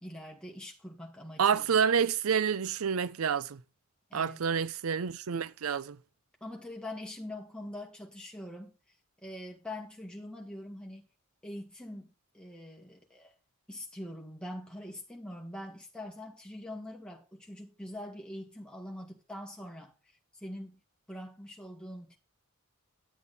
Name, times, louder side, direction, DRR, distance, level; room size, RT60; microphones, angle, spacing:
voice 1, 0.0-1.7 4.1-4.4 6.4-8.7 9.2-11.1 11.4-13.3 13.7-19.9 20.3-20.8 21.1-22.2, left 1 dB, 5° left, 2.1 m, -43 dB
voice 2, 1.4-3.6 4.1-6.0, right 7 dB, 85° right, 0.5 m, -28 dB
10.0 x 8.2 x 4.0 m
head